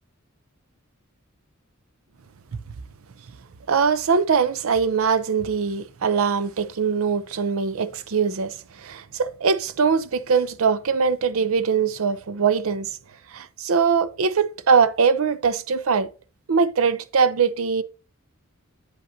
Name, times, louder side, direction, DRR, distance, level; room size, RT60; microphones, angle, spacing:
voice 1, 3.7-12.9 13.3-16.1 16.5-17.8, right 5 dB, 80° right, 0.6 m, -22 dB
7.9 x 7.8 x 2.7 m
head